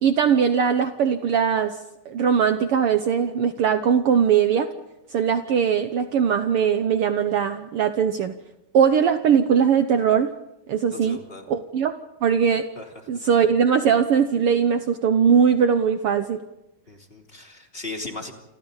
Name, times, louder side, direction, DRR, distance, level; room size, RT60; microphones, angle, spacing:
voice 1, 0.0-1.8 2.0-4.7 5.1-8.3 8.7-10.3 10.7-11.2 11.5-11.9 12.2-12.7 13.1-16.4, right 7 dB, 85° right, 8 dB, 1.2 m, -20 dB
voice 2, 10.9-11.5 12.7-12.9 16.9-18.3, left 2 dB, 20° left, 1 dB, 2.9 m, -37 dB
29.0 x 27.0 x 4.0 m, 0.94 s
omnidirectional pair, 3.9 m